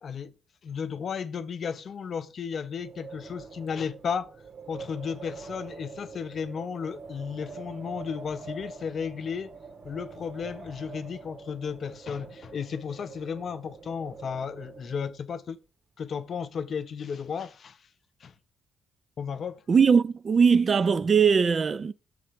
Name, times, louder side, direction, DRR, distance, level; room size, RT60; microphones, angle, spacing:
voice 1, 0.0-0.3 0.6-4.3 4.7-9.5 9.8-15.6 16.0-17.8 18.2-18.3 19.2-19.6, left 6 dB, 50° left, 0.5 m, -34 dB
Wind, 2.7-15.3, right 4 dB, 60° right, 1.3 m, -45 dB
voice 2, 19.7-21.9, right 6 dB, 40° right, 0.3 m, -20 dB
6.8 x 3.3 x 5.0 m
cardioid pair, 90°, 0 cm